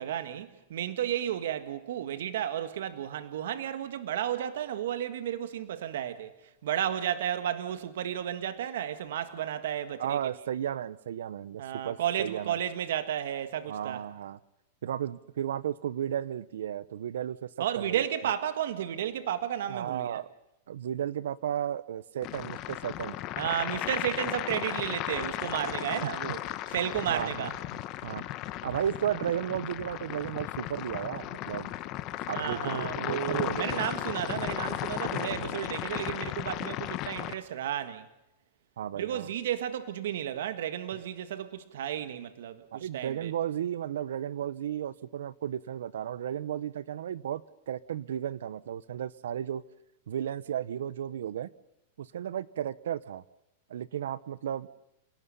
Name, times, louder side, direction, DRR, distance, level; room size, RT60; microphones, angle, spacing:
voice 1, 0.0-6.3 6.6-10.2 11.6-14.0 17.6-20.2 23.4-26.4 26.7-27.6 32.3-38.1 39.0-43.3, right 10 dB, 70° right, 1.7 m, -33 dB
voice 2, 10.0-12.6 13.7-14.4 14.8-17.5 17.7-18.0 19.7-20.3 20.7-23.2 26.0-26.1 27.1-27.5 28.0-28.2 28.6-31.7 32.3-33.9 35.1-35.6 38.8-39.3 42.7-49.6 50.1-51.5 52.0-53.2 53.7-54.8, right 10 dB, 85° right, 1.0 m, -34 dB
sound 1, 22.2-37.3, left 14 dB, 30° left, 1.1 m, -35 dB
29.0 x 18.0 x 5.6 m
supercardioid pair, 170°, 0 cm